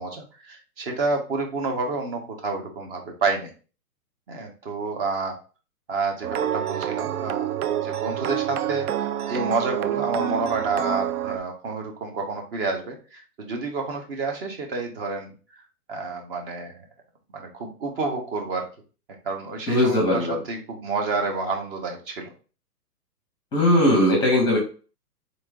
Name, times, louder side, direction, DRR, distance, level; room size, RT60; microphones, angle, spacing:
voice 1, 0.0-3.5 4.3-5.4 5.9-8.9 9.3-15.6 15.9-16.8 17.3-18.7 19.2-22.3, right 3 dB, 40° right, 3 dB, 0.9 m, -29 dB
sound 1, 6.2-11.4, right 11 dB, 70° right, 0.5 m, -27 dB
voice 2, 19.7-20.4 23.5-24.6, left 1 dB, 10° left, 0 dB, 0.7 m, -19 dB
3.9 x 3.1 x 2.3 m, 0.35 s
hypercardioid pair, 130°, 47 cm